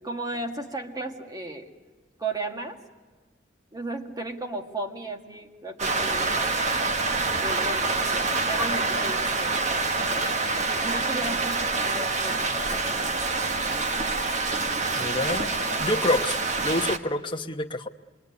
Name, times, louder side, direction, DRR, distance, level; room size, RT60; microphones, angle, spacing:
voice 1, 0.0-1.7 2.2-2.8 3.7-6.5 7.3-13.6, right 2 dB, 20° right, 4 dB, 1.9 m, -35 dB
Rain, 5.8-17.0, right 3 dB, 40° right, 1.2 m, -26 dB
voice 2, 14.9-15.5 15.8-16.4 16.6-17.9, left 2 dB, 25° left, 5 dB, 1.1 m, -27 dB
27.0 x 22.5 x 9.8 m, 1.3 s
head